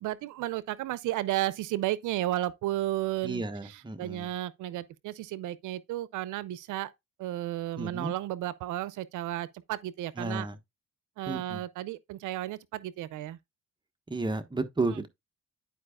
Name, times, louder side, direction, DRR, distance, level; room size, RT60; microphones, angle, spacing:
voice 1, 0.0-3.4 3.7-6.9 7.2-10.5 11.2-13.4, right 14 dB, 80° right, 0.5 m, -33 dB
voice 2, 3.2-4.3 7.8-8.1 10.2-10.6 11.3-11.6 14.1-15.1, right 2 dB, 15° right, 1.2 m, -32 dB
11.0 x 4.7 x 2.3 m
cardioid pair, 90°, 30 cm